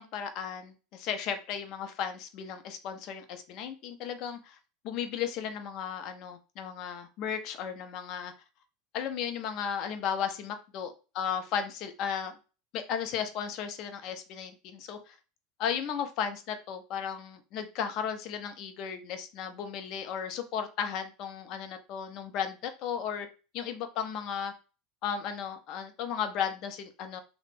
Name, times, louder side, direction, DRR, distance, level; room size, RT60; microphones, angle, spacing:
voice 1, 0.0-4.6 4.8-8.3 8.9-12.3 12.7-15.2 15.6-23.3 23.5-24.5 25.0-27.2, left 8 dB, 45° left, 8 dB, 0.5 m, -35 dB
3.2 x 2.0 x 3.1 m, 0.33 s
figure-of-eight pair, 80°, 0 cm